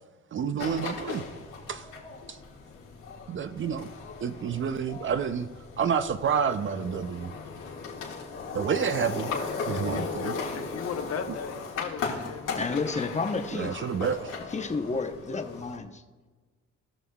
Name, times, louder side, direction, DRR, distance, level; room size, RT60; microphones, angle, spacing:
voice 1, 0.3-1.2 1.7-1.9 2.3-2.4 3.3-3.9 4.2-5.5 5.8-7.3 8.5-9.3 9.7-10.3 11.3-11.4 13.5-14.3, right 7 dB, 40° right, 11 dB, 0.5 m, -29 dB
sound 1, 0.6-15.8, left 5 dB, 85° left, 1.9 m, -37 dB
voice 2, 9.7-12.6, left 6 dB, 55° left, 6 dB, 1.0 m, -37 dB
voice 3, 12.6-13.8 14.5-16.0, left 4 dB, 25° left, 6 dB, 0.9 m, -31 dB
17.5 x 6.2 x 2.3 m, 1.3 s
cardioid pair, 90°, 30 cm